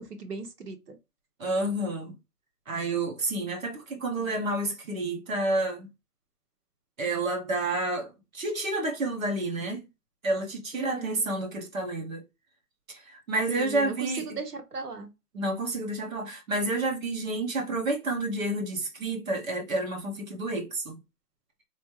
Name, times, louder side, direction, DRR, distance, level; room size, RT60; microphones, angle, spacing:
voice 1, 0.2-1.0 10.7-11.2 13.5-15.1, right 4 dB, 80° right, 1.2 m, -37 dB
voice 2, 1.4-2.1 2.7-5.9 7.0-9.9 10.2-12.2 12.9-14.4 15.3-21.0, right 2 dB, 60° right, 1.2 m, -30 dB
3.2 x 2.1 x 2.9 m
hypercardioid pair, 170°, 47 cm